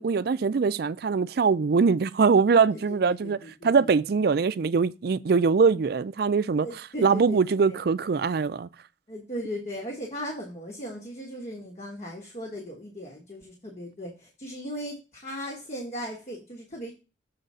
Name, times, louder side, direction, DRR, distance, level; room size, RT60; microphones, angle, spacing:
voice 1, 0.0-6.7 7.0-8.7, right 5 dB, 60° right, 0.4 m, -22 dB
voice 2, 3.0-3.7 4.0-4.1 6.6-7.8 9.1-16.9, equal, 35° left, 1.4 m, -37 dB
7.1 x 3.9 x 5.4 m
head